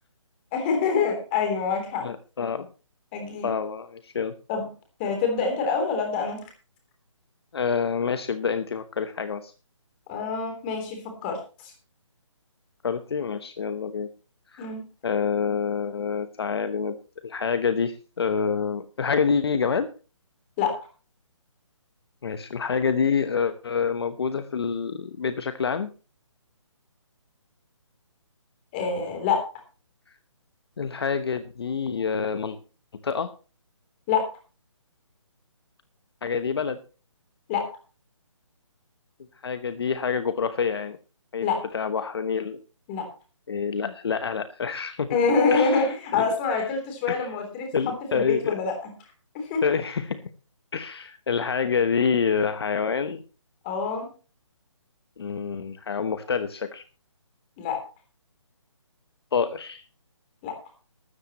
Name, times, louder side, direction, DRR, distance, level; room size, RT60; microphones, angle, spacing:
voice 1, 0.5-2.1 3.1-3.5 4.5-4.6 5.0-6.4 10.1-11.7 14.6-14.8 20.6-20.7 28.7-29.4 34.1-34.3 37.5-37.6 41.4-41.6 42.9-43.1 45.1-47.7 48.1-48.9 49.3-49.6 53.6-54.1 57.6-57.8 60.4-60.5, left 5 dB, 20° left, 4 dB, 3.3 m, -26 dB
voice 2, 2.0-2.7 3.4-4.3 7.5-9.5 12.8-14.1 14.5-14.7 15.0-16.9 17.2-19.9 22.2-25.9 30.8-32.6 33.0-33.3 36.2-36.8 39.4-41.0 41.3-41.5 41.7-42.6 43.5-45.2 45.5-45.9 46.1-46.2 46.5-46.7 47.1-47.3 47.7-48.5 49.6-50.2 50.7-53.2 55.2-56.8 59.3-59.8, left 6 dB, 50° left, 11 dB, 1.0 m, -27 dB
15.0 x 13.5 x 3.0 m, 0.34 s
hypercardioid pair, 165°, 16 cm